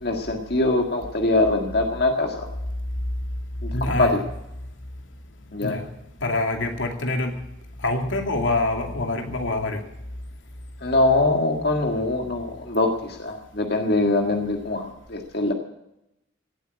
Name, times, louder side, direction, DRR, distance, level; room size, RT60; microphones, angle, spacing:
voice 1, 0.0-2.5 3.6-4.2 5.5-5.8 10.8-15.5, left 2 dB, 55° left, 2 dB, 1.8 m, -23 dB
voice 2, 3.7-4.2 5.6-5.8 6.2-7.3 7.8-9.8, left 2 dB, 85° left, 4 dB, 2.5 m, -25 dB
17.0 x 8.3 x 9.6 m, 0.86 s
head